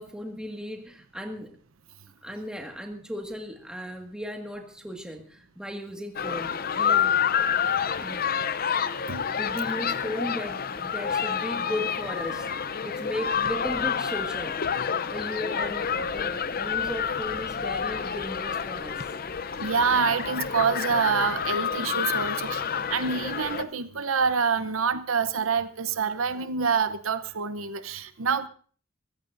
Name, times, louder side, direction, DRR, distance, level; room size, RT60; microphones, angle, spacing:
voice 1, 0.0-1.6 2.2-7.2 8.0-8.4 9.4-12.5 12.8-14.6 15.1-19.1, equal, 5° right, 3 dB, 1.8 m, -36 dB
sound 1, 6.2-23.6, left 7 dB, 45° left, 0.6 m, -28 dB
voice 2, 19.5-28.5, right 5 dB, 85° right, 12 dB, 0.8 m, -26 dB
24.5 x 14.5 x 2.6 m, 0.42 s
head